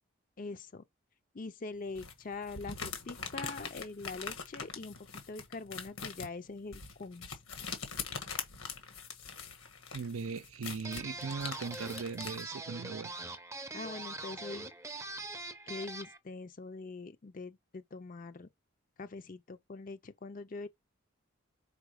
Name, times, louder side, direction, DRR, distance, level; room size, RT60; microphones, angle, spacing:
voice 1, 0.4-0.8 1.3-5.0 5.3-7.4 13.7-14.7 15.7-18.5 19.0-20.7, left 3 dB, 40° left, 0.5 m, -43 dB
sound 1, 1.9-12.4, left 6 dB, 85° left, 1.4 m, -43 dB
voice 2, 9.9-13.2, right 5 dB, 85° right, 0.5 m, -39 dB
sound 2, 10.8-16.2, right 2 dB, 15° right, 0.6 m, -43 dB
4.8 x 4.6 x 4.9 m
head